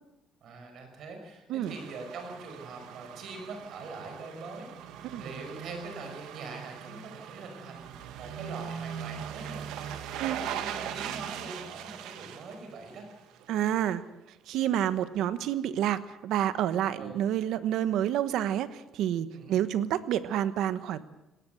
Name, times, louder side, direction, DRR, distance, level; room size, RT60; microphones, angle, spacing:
voice 1, 0.4-4.7 5.2-9.9 10.2-13.1 17.0-17.2 19.3-19.6, right 3 dB, 55° right, 5 dB, 5.4 m, -43 dB
sound 1, 1.7-13.5 13.9-14.0, right 9 dB, 85° right, 1.8 m, -40 dB
voice 2, 13.5-14.0 14.5-21.1, right 11 dB, 70° right, 13 dB, 1.2 m, -29 dB
19.0 x 18.0 x 8.0 m, 0.91 s
cardioid pair, 150°, 0 cm